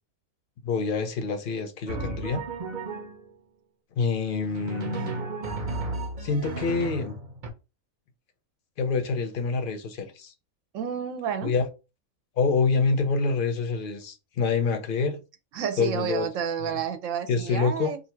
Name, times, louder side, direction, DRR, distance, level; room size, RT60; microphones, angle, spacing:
voice 1, 0.6-2.4 3.9-5.3 6.2-7.2 8.8-10.3 11.4-11.7 12.4-15.2 15.8-16.3 16.6-16.8 17.3-17.9, left 4 dB, 50° left, 0.7 m, -26 dB
Drum, 1.9-3.3 4.4-7.5, right 3 dB, 45° right, 0.6 m, -34 dB
voice 2, 10.7-11.5 15.5-18.0, right 8 dB, 75° right, 0.9 m, -30 dB
2.7 x 2.5 x 4.3 m
omnidirectional pair, 1.4 m